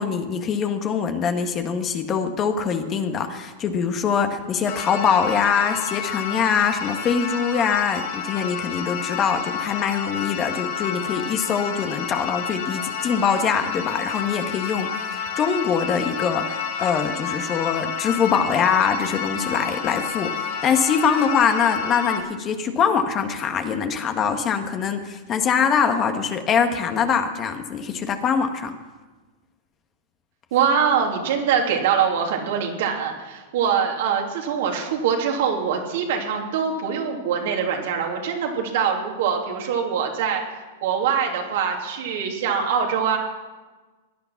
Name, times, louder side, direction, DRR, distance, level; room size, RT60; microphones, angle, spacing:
voice 1, 0.0-28.7, left 6 dB, 30° left, 6 dB, 1.6 m, -23 dB
sound 1, 4.7-22.2, left 7 dB, 65° left, 2.7 m, -30 dB
voice 2, 30.5-40.4 40.8-43.2, right 7 dB, 65° right, 1 dB, 2.9 m, -23 dB
17.5 x 10.5 x 6.0 m, 1.3 s
hypercardioid pair, 120°, 0 cm